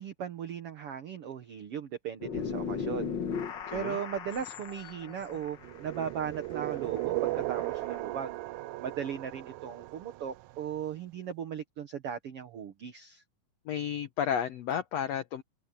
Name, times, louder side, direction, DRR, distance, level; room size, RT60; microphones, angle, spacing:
voice 1, 0.0-3.2 3.7-8.4 8.8-13.2, right 8 dB, 65° right, 1.5 m, -37 dB
sound 1, 2.2-8.0, left 6 dB, 65° left, 1.1 m, -38 dB
voice 2, 3.7-4.0 13.7-15.4, left 8 dB, 85° left, 1.5 m, -32 dB
sound 2, 5.6-10.6, right 19 dB, 85° right, 1.8 m, -36 dB
omnidirectional pair, 4.2 m